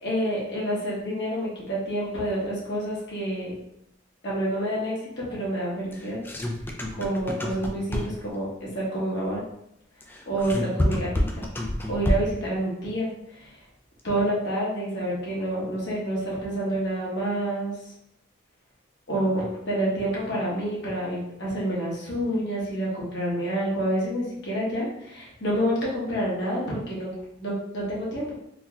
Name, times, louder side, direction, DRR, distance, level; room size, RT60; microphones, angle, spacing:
voice 1, 0.0-3.5 4.2-6.2 7.0-9.4 10.3-11.4 11.9-13.5 14.0-17.9 19.1-27.1 27.4-28.3, right 1 dB, 60° left, -5 dB, 1.2 m, -28 dB
sound 1, 5.9-8.4 10.0-12.5, left 1 dB, 10° left, 0.3 m, -28 dB
3.7 x 2.7 x 2.3 m, 0.78 s
head